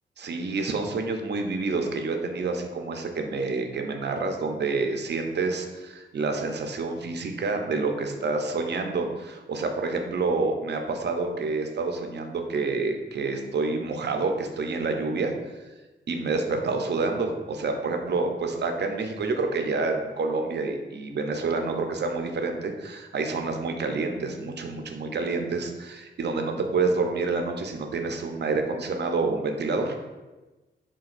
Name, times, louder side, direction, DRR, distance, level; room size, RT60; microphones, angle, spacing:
voice 1, 0.2-15.3 16.1-30.1, right 3 dB, 60° right, 4 dB, 0.6 m, -28 dB
6.0 x 2.3 x 2.5 m, 1.1 s
cardioid pair, 60°, 20 cm